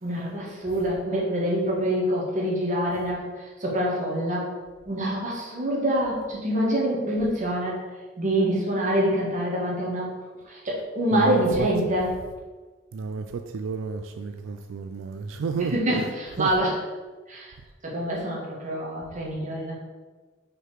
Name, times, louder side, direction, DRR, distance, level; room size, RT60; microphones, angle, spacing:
voice 1, 0.0-4.5 4.9-7.8 8.2-10.1 10.4-12.1 15.6-16.8 17.3-17.5 17.8-19.7, right 1 dB, 40° right, -4 dB, 1.7 m, -26 dB
voice 2, 11.1-11.7 12.9-15.8 16.4-16.5, right 5 dB, 90° right, 7 dB, 0.4 m, -31 dB
4.7 x 4.7 x 4.9 m, 1.3 s
head